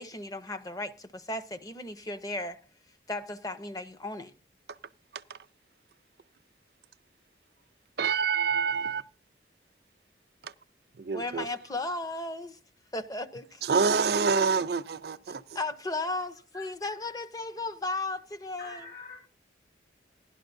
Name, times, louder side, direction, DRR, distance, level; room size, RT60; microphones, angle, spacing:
voice 1, 0.0-2.6 3.1-4.3 11.1-12.6 12.9-13.6 14.2-14.3 15.5-18.8, left 2 dB, 20° left, 0.6 m, -35 dB
voice 2, 8.0-9.0 11.0-11.4 13.6-15.4, right 5 dB, 60° right, 0.5 m, -26 dB
voice 3, 18.6-19.2, left 3 dB, 75° left, 5.6 m, -44 dB
16.5 x 11.5 x 2.6 m
head